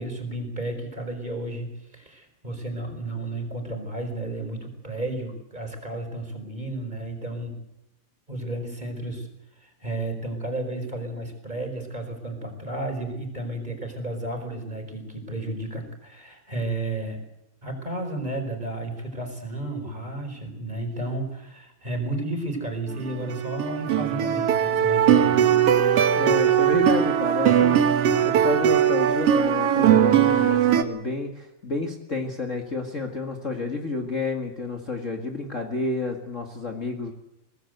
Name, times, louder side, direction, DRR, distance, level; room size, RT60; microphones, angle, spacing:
voice 1, 0.0-7.5 8.3-9.3 9.6-17.2 17.6-25.4, right 2 dB, 10° right, 4 dB, 4.6 m, -32 dB
sound 1, 22.9-30.8, right 9 dB, 85° right, 1.3 m, -20 dB
voice 2, 26.1-27.9 28.2-37.1, left 3 dB, 45° left, 3 dB, 1.0 m, -30 dB
23.5 x 19.0 x 8.0 m, 0.87 s
omnidirectional pair, 4.7 m